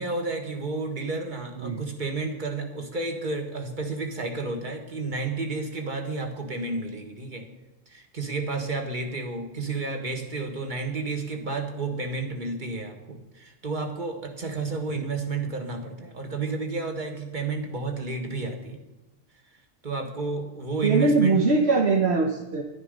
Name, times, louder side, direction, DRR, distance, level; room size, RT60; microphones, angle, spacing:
voice 1, 0.0-7.4 7.9-18.8 19.8-21.4, right 3 dB, 40° right, 3 dB, 1.7 m, -31 dB
voice 2, 20.8-22.6, right 3 dB, 60° right, 3 dB, 1.2 m, -21 dB
11.5 x 11.0 x 5.3 m, 1.1 s
omnidirectional pair, 1.3 m